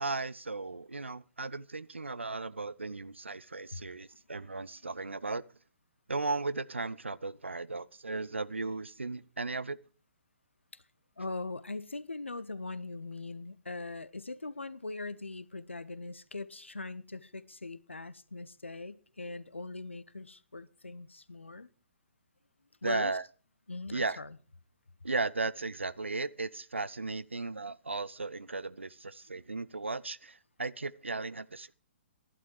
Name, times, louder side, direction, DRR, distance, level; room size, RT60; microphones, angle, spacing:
voice 1, 0.0-5.4 6.1-9.8 22.8-23.2 23.9-24.2 25.0-31.7, right 3 dB, 75° right, 0.6 m, -36 dB
voice 2, 11.2-21.7 22.8-23.1 23.7-24.4, left 3 dB, 75° left, 0.9 m, -41 dB
12.5 x 11.5 x 4.8 m
figure-of-eight pair, 125°, 6 cm